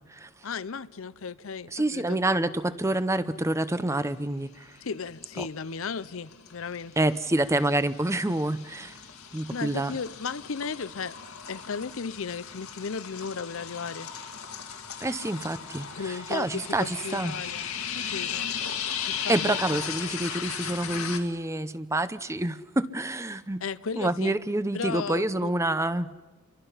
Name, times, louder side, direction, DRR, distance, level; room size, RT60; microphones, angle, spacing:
voice 1, 0.4-2.2 4.8-7.1 9.5-11.2 11.5-14.1 16.0-18.5 19.0-19.8 23.6-24.4 24.7-25.5, left 5 dB, 65° left, 0.7 m, -35 dB
voice 2, 1.7-4.7 7.0-9.0 9.3-9.9 15.0-17.4 19.3-23.6 24.0-26.2, right 1 dB, 15° right, 0.7 m, -27 dB
sound 1, 4.9-5.4 5.7-21.2, left 7 dB, 85° left, 2.3 m, -37 dB
29.5 x 24.0 x 5.7 m
head